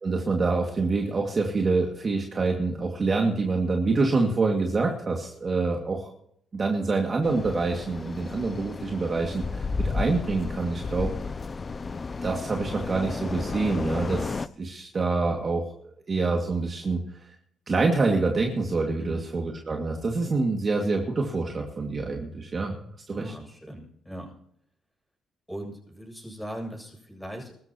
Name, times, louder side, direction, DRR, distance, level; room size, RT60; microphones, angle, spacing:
voice 1, 0.0-6.1 6.5-11.1 12.2-17.3 17.7-22.7 23.1-23.3, right 3 dB, 35° right, 1 dB, 2.4 m, -26 dB
sound 1, 7.2-14.5, left 4 dB, 35° left, 0.6 m, -33 dB
voice 2, 19.0-19.4 23.1-24.3 25.5-27.5, right 1 dB, ahead, 1 dB, 7.8 m, -39 dB
23.0 x 13.5 x 3.1 m, 0.69 s
cardioid pair, 90°, 0 cm